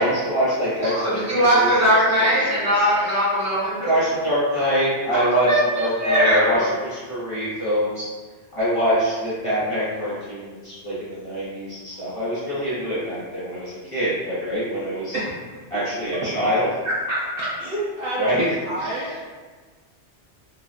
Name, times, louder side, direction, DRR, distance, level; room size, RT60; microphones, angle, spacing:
voice 1, 0.0-1.7 2.2-2.6 3.8-8.1 8.5-15.2 15.7-16.7 18.2-19.2, equal, 35° left, -12 dB, 0.6 m, -24 dB
voice 2, 0.8-4.0 5.1-5.6 6.0-6.6, equal, 15° right, -11 dB, 0.8 m, -20 dB
voice 3, 16.8-18.3 18.7-19.1, right 1 dB, 65° right, -7 dB, 0.7 m, -27 dB
2.4 x 2.2 x 2.4 m, 1.4 s
omnidirectional pair, 1.2 m